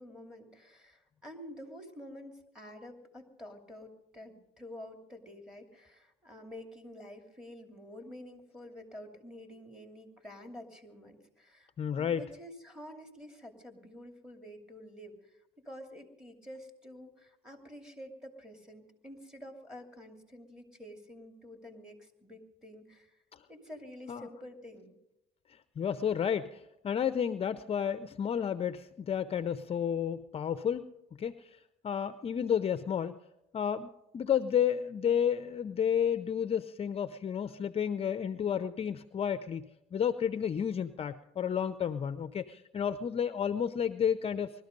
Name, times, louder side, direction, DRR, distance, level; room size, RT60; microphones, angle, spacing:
voice 1, 0.0-23.2 23.5-25.0, left 1 dB, 5° right, 4 dB, 2.7 m, -49 dB
voice 2, 11.8-12.2 23.3-23.4 24.1-24.3 25.5-30.9 31.2-33.1 33.5-44.5, left 8 dB, 35° left, 12 dB, 0.6 m, -31 dB
20.5 x 13.5 x 5.3 m, 0.87 s
cardioid pair, 110°, 17 cm